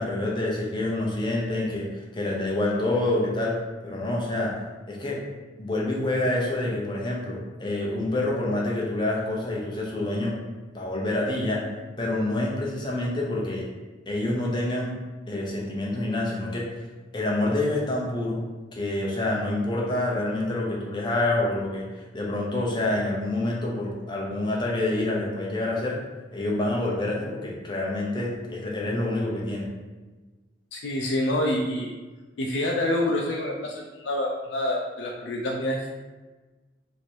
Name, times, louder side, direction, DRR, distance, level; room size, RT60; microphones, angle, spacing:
voice 1, 0.0-3.6 3.8-4.6 4.9-5.2 5.6-10.4 10.7-11.6 12.0-13.7 14.1-14.9 15.3-16.9 17.1-26.0 26.3-29.7, left 1 dB, 25° left, -3 dB, 0.7 m, -27 dB
voice 2, 30.7-31.9 32.4-35.9, left 1 dB, 85° left, -1 dB, 0.4 m, -27 dB
3.0 x 2.7 x 4.4 m, 1.3 s
head